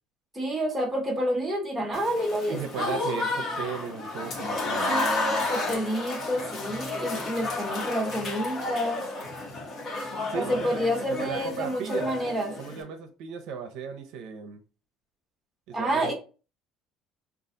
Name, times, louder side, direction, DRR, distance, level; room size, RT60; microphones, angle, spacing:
voice 1, 0.3-3.0 4.9-9.0 10.3-12.5 15.7-16.1, equal, 5° right, 1.3 m, -29 dB
Applause / Crowd, 1.9-12.8, left 2 dB, 40° left, 1.1 m, -32 dB
voice 2, 2.5-5.5 10.3-10.8 11.1-12.1 12.6-14.6 15.7-16.1, right 6 dB, 70° right, 0.7 m, -35 dB
sound 1, 3.4-4.3 5.6-5.7 6.6-7.9 9.5-9.6 10.0-10.8, left 5 dB, 20° left, 0.7 m, -43 dB
3.9 x 2.4 x 3.8 m
cardioid pair, 145°, 0 cm